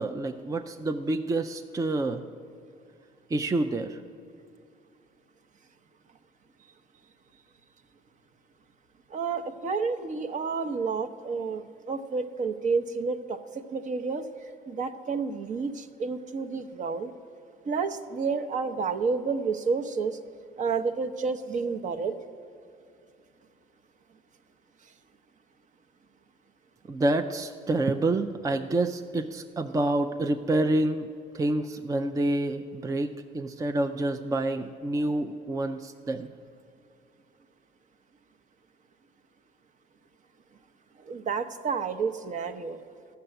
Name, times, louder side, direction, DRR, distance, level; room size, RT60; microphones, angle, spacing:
voice 1, 0.0-2.2 3.3-4.0 26.9-31.1 31.3-36.3, right 2 dB, 20° right, 7 dB, 0.5 m, -28 dB
voice 2, 9.1-13.4 13.7-14.3 14.7-17.1 17.7-20.2 20.6-22.1 41.1-42.8, right 5 dB, 45° right, 9 dB, 0.8 m, -30 dB
13.0 x 6.8 x 9.1 m, 2.4 s
cardioid pair, 110°, 17 cm